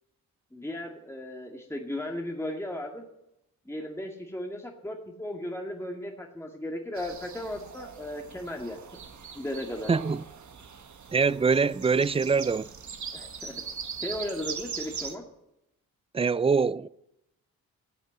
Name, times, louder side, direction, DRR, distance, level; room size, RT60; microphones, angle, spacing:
voice 1, 0.5-3.1 3.7-8.8 9.3-9.9 13.1-13.6 14.0-15.2, left 1 dB, 5° left, 2.2 m, -36 dB
sound 1, 7.0-15.2, right 6 dB, 50° right, 1.6 m, -41 dB
voice 2, 9.9-10.2 11.1-12.7 16.1-16.9, right 5 dB, 15° right, 0.4 m, -24 dB
13.5 x 7.2 x 8.7 m
supercardioid pair, 55°, 37 cm